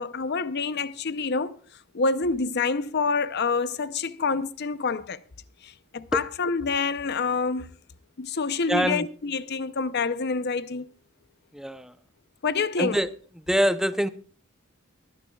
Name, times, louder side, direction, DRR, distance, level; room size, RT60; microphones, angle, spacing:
voice 1, 0.0-1.6 1.9-5.2 5.6-7.8 8.2-10.9 12.4-13.0, left 4 dB, 50° left, 0.6 m, -27 dB
voice 2, 8.7-9.1 11.5-11.9 12.8-13.1 13.5-14.1, equal, ahead, 0.6 m, -24 dB
23.5 x 10.0 x 2.3 m
head